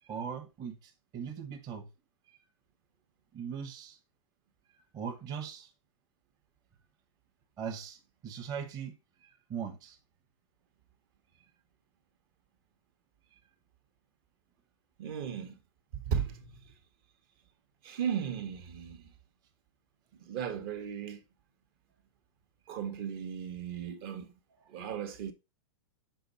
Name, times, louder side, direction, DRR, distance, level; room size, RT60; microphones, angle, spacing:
voice 1, 0.0-1.9 2.3-2.4 3.3-4.0 4.8-5.7 7.6-10.0, right 7 dB, 25° right, 1.1 m, -40 dB
voice 2, 15.0-15.6 15.9-16.5 17.8-19.1 20.3-21.2 22.7-24.3 24.7-25.3, right 8 dB, 45° right, 1.2 m, -36 dB
6.9 x 4.5 x 4.1 m
hypercardioid pair, 155°, 16 cm